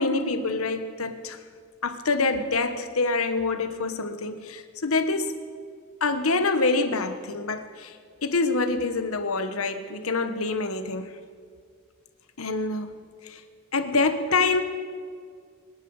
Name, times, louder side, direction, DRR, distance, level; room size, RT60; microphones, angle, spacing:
voice 1, 0.0-1.4 1.8-5.4 6.0-7.9 8.2-11.2 12.4-12.9 13.2-13.4 13.7-14.6, left 3 dB, 75° left, 9 dB, 1.2 m, -26 dB
25.0 x 11.0 x 4.9 m, 2.1 s
head